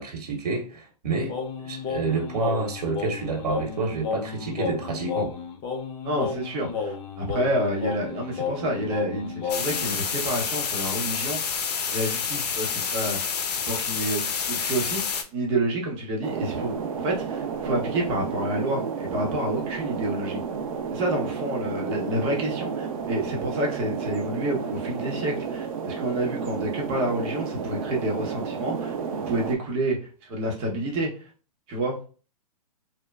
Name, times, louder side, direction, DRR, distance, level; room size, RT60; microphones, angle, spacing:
voice 1, 0.0-1.4 1.6-5.3, right 4 dB, 75° right, 0.9 m, -29 dB
Singing, 1.3-9.9, left 5 dB, 20° left, 0.4 m, -32 dB
voice 2, 6.0-11.4 11.9-13.3 13.7-15.0 15.3-16.8 17.0-20.4 20.9-28.9 29.3-30.0 30.2-31.1 31.7-32.0, right 1 dB, 30° right, 0.8 m, -28 dB
sound 1, 9.5-15.2, left 6 dB, 85° left, 0.5 m, -28 dB
sound 2, 16.2-29.6, right 6 dB, 60° right, 0.5 m, -31 dB
3.0 x 2.1 x 2.3 m
hypercardioid pair, 140°, 20 cm